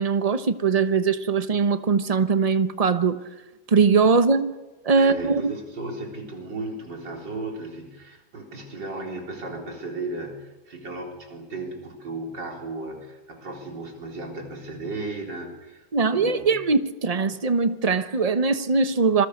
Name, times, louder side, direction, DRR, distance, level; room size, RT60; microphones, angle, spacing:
voice 1, 0.0-3.2 3.7-4.5 4.8-5.5 15.9-19.3, right 4 dB, 30° right, 0.7 m, -21 dB
voice 2, 4.9-16.7, right 2 dB, 75° right, 4.6 m, -35 dB
27.0 x 21.5 x 6.5 m
omnidirectional pair, 2.0 m